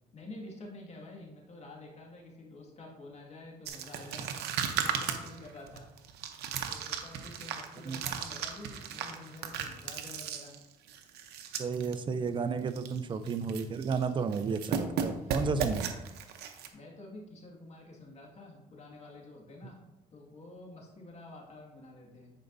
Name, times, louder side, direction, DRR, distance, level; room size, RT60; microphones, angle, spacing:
voice 1, 0.1-5.9 6.7-10.6 15.2-15.4 16.4-19.8 20.1-22.3, left 2 dB, 40° left, -1 dB, 2.0 m, -49 dB
sound 1, 3.6-12.0 12.3-12.4 12.7-13.0 13.3-14.0 14.3-16.7, right 8 dB, 75° right, 0.8 m, -36 dB
voice 2, 11.6-15.9, right 5 dB, 30° right, 10 dB, 0.5 m, -32 dB
10.0 x 5.0 x 2.7 m, 0.98 s
cardioid pair, 110°, 17 cm